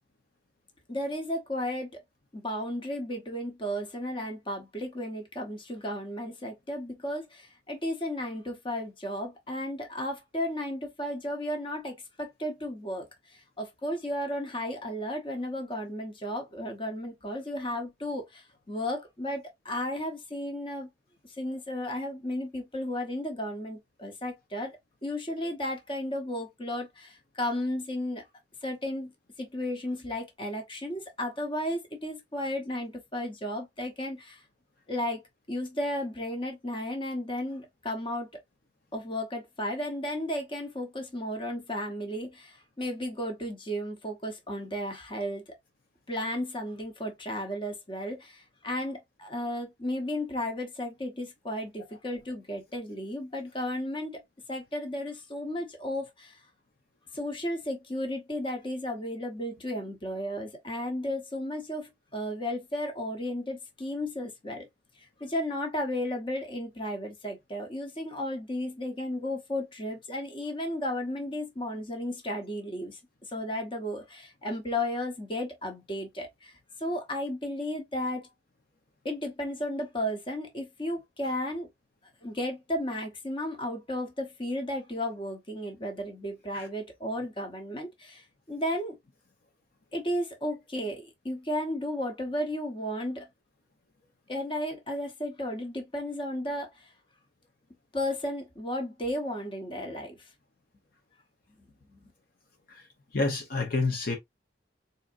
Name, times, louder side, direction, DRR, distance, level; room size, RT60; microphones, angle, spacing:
voice 1, 0.9-2.0 2.3-13.1 13.3-20.9 21.2-28.2 28.6-29.1 29.4-34.4 34.9-35.2 35.5-38.3 38.9-45.4 46.1-54.2 54.5-56.4 57.1-64.7 65.2-76.5 76.8-78.3 79.0-81.7 82.2-89.0 89.9-93.3 94.3-96.9 97.9-100.3 101.6-102.1, left 1 dB, 30° left, 1.0 m, -34 dB
voice 2, 103.1-104.1, left 3 dB, 55° left, 0.8 m, -29 dB
4.0 x 2.8 x 2.5 m
head